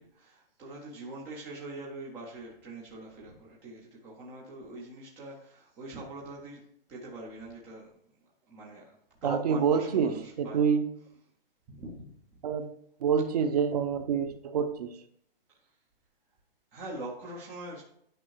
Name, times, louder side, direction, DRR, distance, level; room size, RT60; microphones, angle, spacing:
voice 1, 0.0-6.6 6.9-7.9 8.5-10.6 11.7-12.0 15.6-15.7 16.7-17.8, right 2 dB, 5° right, -4 dB, 0.5 m, -43 dB
voice 2, 9.2-10.1 10.4-10.8 12.4-12.7 13.0-14.9, right 7 dB, 40° right, 8 dB, 0.9 m, -26 dB
8.9 x 5.4 x 4.6 m, 0.71 s
hypercardioid pair, 165°, 30 cm